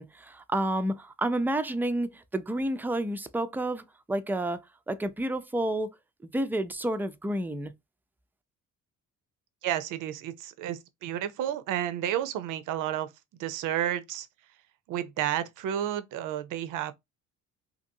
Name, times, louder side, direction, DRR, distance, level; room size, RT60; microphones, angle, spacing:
voice 1, 0.0-5.9 6.2-7.7, right 1 dB, 5° right, 0.3 m, -30 dB
voice 2, 9.6-13.1 13.4-14.3 14.9-16.9, right 11 dB, 70° right, 0.6 m, -31 dB
2.8 x 2.6 x 2.6 m
supercardioid pair, 75°, 32 cm